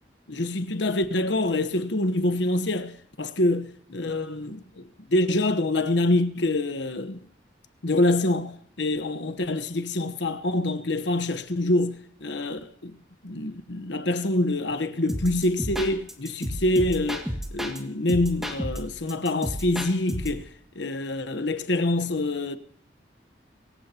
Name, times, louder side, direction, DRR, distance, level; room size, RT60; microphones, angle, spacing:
voice 1, 0.3-7.2 7.8-13.0 13.2-20.5 20.7-22.6, left 2 dB, 75° left, 1.1 m, -26 dB
sound 1, 15.1-17.8 18.1-20.4, equal, ahead, 2.0 m, -32 dB
25.5 x 15.0 x 2.9 m
head